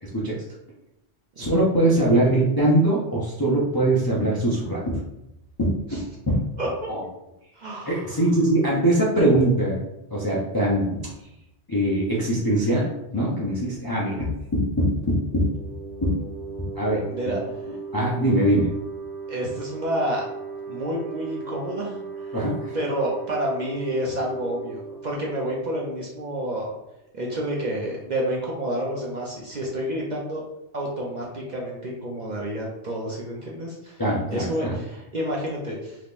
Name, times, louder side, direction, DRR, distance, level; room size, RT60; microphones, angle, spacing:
voice 1, 0.0-0.3 1.4-5.0 5.6-6.4 6.9-7.0 7.9-9.8 10.1-11.1 11.7-15.5 16.0-16.2 16.8-17.0 17.9-18.7 22.3-22.7 34.0-34.8, right 1 dB, 30° left, -6 dB, 0.4 m, -22 dB
voice 2, 6.6-6.9 7.6-8.2 13.5-13.8 17.1-17.4 19.3-20.2 20.7-22.3 22.7-26.7 27.1-30.4 30.7-34.0 34.3-36.0, right 1 dB, 50° right, -3 dB, 0.6 m, -29 dB
sound 1, 15.0-26.4, right 4 dB, 15° right, 1.5 m, -37 dB
3.5 x 2.9 x 2.5 m, 0.89 s
omnidirectional pair, 1.2 m